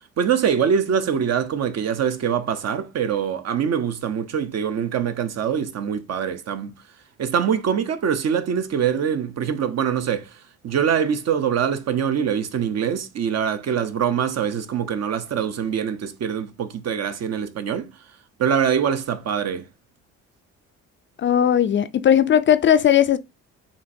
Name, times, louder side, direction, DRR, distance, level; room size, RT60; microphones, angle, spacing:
voice 1, 0.2-6.7 7.2-17.9 18.4-19.6, right 8 dB, 55° right, 0.8 m, -24 dB
voice 2, 21.2-23.2, left 9 dB, 40° left, 0.4 m, -17 dB
7.0 x 2.6 x 2.6 m
cardioid pair, 90°, 30 cm